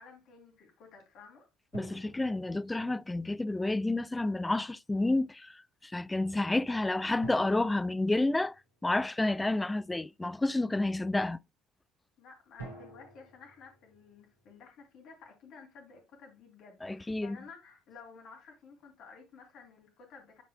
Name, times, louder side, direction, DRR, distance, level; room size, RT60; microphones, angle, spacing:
voice 1, 0.0-1.5 12.2-20.4, left 5 dB, 55° left, 2.8 m, -53 dB
sound 1, 1.7-3.3 7.2-9.1 12.6-14.8, right 3 dB, 90° left, 3.0 m, -50 dB
voice 2, 1.7-8.6 8.8-11.4 16.8-17.4, left 2 dB, 15° left, 0.3 m, -30 dB
9.0 x 5.5 x 2.2 m
figure-of-eight pair, 55°, 0 cm